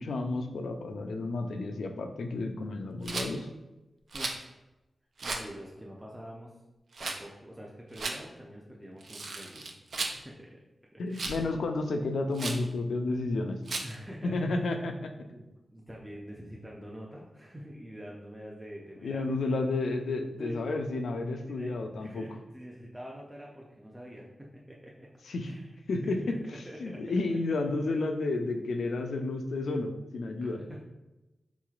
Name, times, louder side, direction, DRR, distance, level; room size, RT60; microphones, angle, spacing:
voice 1, 0.0-3.5 11.0-13.6 14.2-15.1 19.0-22.2 25.3-25.5 25.9-26.2 26.8-30.6, left 2 dB, 85° left, 5 dB, 0.3 m, -31 dB
Rattle, 3.0-3.3 4.1-4.4 5.2-5.5 6.9-7.2 7.9-8.2 9.0-10.2 11.1-11.4 12.3-12.6 13.7-13.9, right 3 dB, 70° right, 0.4 m, -35 dB
voice 2, 5.2-6.6 7.0-10.6 10.9-11.4 13.8-14.8 15.3-19.4 20.4-20.6 21.5-21.7 22.0-25.1 25.4-25.7 26.0-27.0 27.3-27.4 29.1-29.2 30.4-30.8, equal, 10° right, -3 dB, 0.5 m, -46 dB
3.7 x 3.0 x 2.4 m, 1.0 s
cardioid pair, 55°, 0 cm